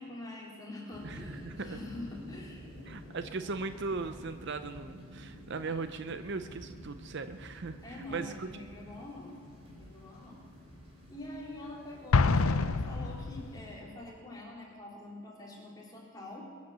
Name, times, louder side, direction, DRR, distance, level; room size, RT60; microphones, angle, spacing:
voice 1, 0.0-2.7 3.4-3.6 7.8-9.3 9.8-10.4 11.1-16.5, left 1 dB, 15° left, -4 dB, 3.5 m, -45 dB
sound 1, 0.9-13.8, equal, 25° right, 3.9 m, -50 dB
voice 2, 1.0-1.8 2.9-7.8 8.1-8.5, right 4 dB, 55° right, 10 dB, 0.6 m, -38 dB
Explosion, 12.1-13.7, left 4 dB, 75° left, 0.6 m, -27 dB
23.0 x 8.5 x 6.9 m, 2.3 s
head